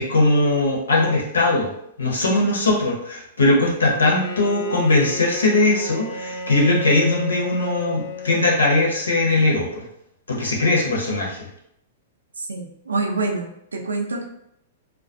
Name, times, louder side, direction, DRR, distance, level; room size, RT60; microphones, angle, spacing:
voice 1, 0.0-1.7 2.0-9.8 10.3-11.5, left 2 dB, 75° left, -2 dB, 0.8 m, -20 dB
Bowed string instrument, 3.8-9.3, left 4 dB, 55° left, 0.3 m, -33 dB
voice 2, 12.4-14.3, right 3 dB, 80° right, 3 dB, 0.4 m, -26 dB
2.2 x 2.2 x 2.5 m, 0.74 s
figure-of-eight pair, 105°, 0 cm